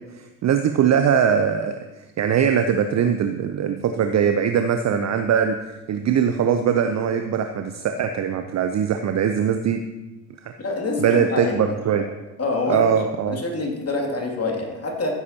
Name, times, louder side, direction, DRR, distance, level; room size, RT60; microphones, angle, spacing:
voice 1, 0.1-1.8 2.2-5.6 5.9-9.8 11.0-12.1 12.7-13.4, right 8 dB, 35° right, 7 dB, 0.7 m, -21 dB
voice 2, 10.6-11.8 12.4-13.0 13.3-15.2, left 2 dB, 30° left, 0 dB, 2.7 m, -26 dB
14.5 x 8.3 x 2.9 m, 1.1 s
hypercardioid pair, 55°, 46 cm